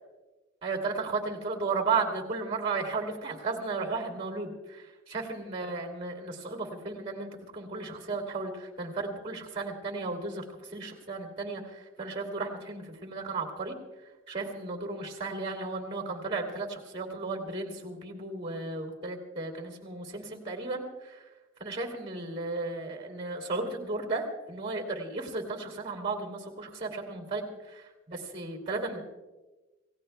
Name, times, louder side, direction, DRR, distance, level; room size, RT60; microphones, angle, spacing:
voice 1, 0.6-4.8 5.1-10.4 10.7-13.7 14.3-21.2 21.6-29.0, right 3 dB, 25° right, 3 dB, 2.6 m, -34 dB
28.5 x 17.0 x 2.3 m, 1.2 s
head